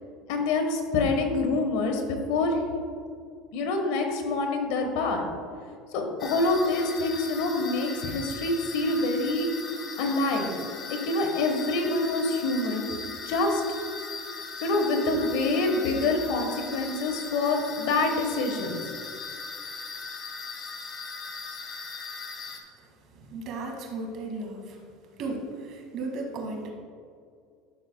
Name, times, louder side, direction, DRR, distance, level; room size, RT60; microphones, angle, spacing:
voice 1, 0.3-2.6 3.5-5.3 5.9-9.7 10.0-10.5 10.9-12.9 13.3-13.6 14.6-18.8, left 2 dB, 70° left, 4 dB, 1.3 m, -26 dB
sound 1, 6.2-22.6, left 4 dB, 35° left, 1.4 m, -39 dB
voice 2, 23.2-24.8 25.2-26.7, right 2 dB, 55° right, 0 dB, 2.0 m, -35 dB
12.0 x 6.6 x 2.3 m, 2.3 s
supercardioid pair, 115°, 0 cm